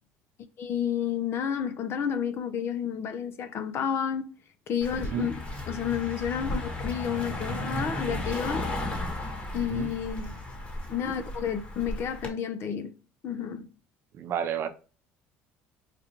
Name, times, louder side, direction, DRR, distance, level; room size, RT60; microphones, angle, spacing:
voice 1, 0.6-4.3 4.7-8.7 9.5-10.4 10.9-12.9 13.2-13.6, left 8 dB, 55° left, 0.6 m, -31 dB
Car passing by, 4.8-12.3, left 1 dB, 25° left, 1.3 m, -34 dB
voice 2, 14.1-14.7, right 9 dB, 55° right, 0.6 m, -30 dB
4.9 x 2.3 x 2.9 m
supercardioid pair, 95°, 5 cm